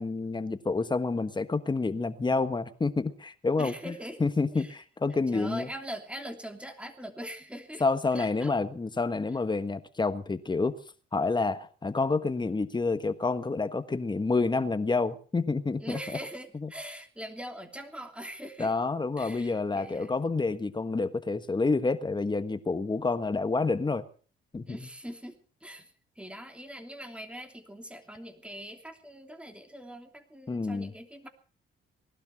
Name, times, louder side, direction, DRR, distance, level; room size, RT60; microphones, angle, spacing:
voice 1, 0.0-3.9 4.2-5.7 7.8-10.8 11.1-16.0 18.6-24.0 24.5-24.8 30.5-30.9, left 3 dB, 20° left, 11 dB, 1.4 m, -28 dB
voice 2, 3.6-4.2 4.5-4.8 5.3-7.8 8.1-8.5 15.8-18.7 19.2-20.1 24.6-31.3, equal, 5° right, 6 dB, 3.0 m, -42 dB
19.5 x 12.0 x 6.0 m, 0.42 s
cardioid pair, 90°, 20 cm